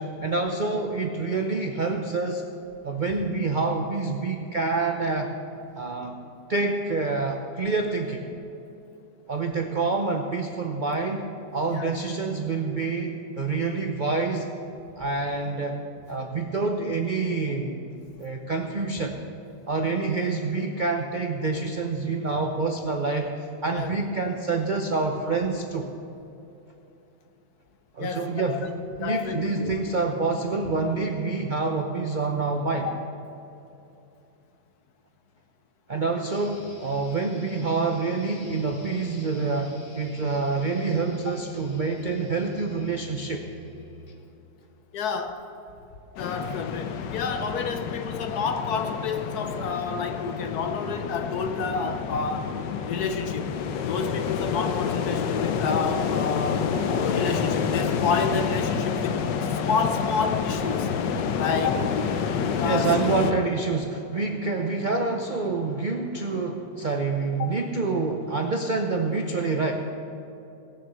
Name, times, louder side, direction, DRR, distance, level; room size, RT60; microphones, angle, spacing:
voice 1, 0.0-2.4 2.8-5.3 5.8-6.2 6.5-8.2 9.3-11.3 11.5-14.5 15.0-17.8 18.2-19.2 19.7-25.9 27.9-28.7 29.0-32.9 35.9-43.4 61.7-61.8 62.6-69.7, right 3 dB, 50° right, 0.5 m, -27 dB
voice 2, 28.0-28.6 29.0-29.8 44.9-45.4 46.1-53.5 53.9-60.9 61.3-61.9 62.6-63.0 67.4-67.5, left 5 dB, 65° left, 1.3 m, -29 dB
sound 1, 36.3-44.3, left 1 dB, 35° left, 1.3 m, -49 dB
sound 2, 46.2-63.3, left 6 dB, 90° left, 1.4 m, -28 dB
17.5 x 7.1 x 6.6 m
omnidirectional pair, 1.9 m